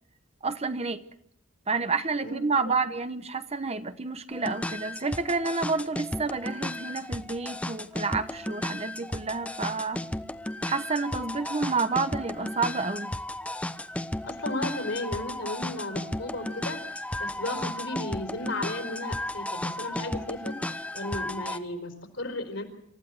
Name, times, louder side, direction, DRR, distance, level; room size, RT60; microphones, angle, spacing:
voice 1, 0.4-1.0 1.7-10.0 10.7-13.1, right 4 dB, 30° right, 1.0 m, -29 dB
voice 2, 2.2-2.8 14.2-22.6, left 2 dB, 70° left, 4.3 m, -35 dB
sound 1, 4.3-21.6, left 1 dB, 5° left, 0.8 m, -34 dB
28.0 x 15.0 x 7.9 m
head